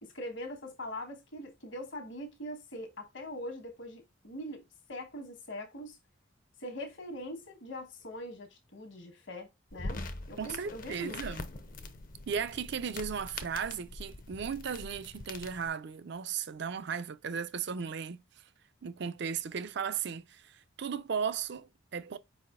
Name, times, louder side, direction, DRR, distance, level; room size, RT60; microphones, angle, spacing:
voice 1, 0.0-4.6 4.9-6.0 6.6-11.2, left 1 dB, 65° left, 1.3 m, -42 dB
sound 1, 9.7-15.7, left 2 dB, 45° left, 0.6 m, -43 dB
voice 2, 10.4-11.4 12.3-18.2 18.8-22.2, right 6 dB, 55° right, 0.4 m, -36 dB
4.9 x 4.1 x 2.4 m
head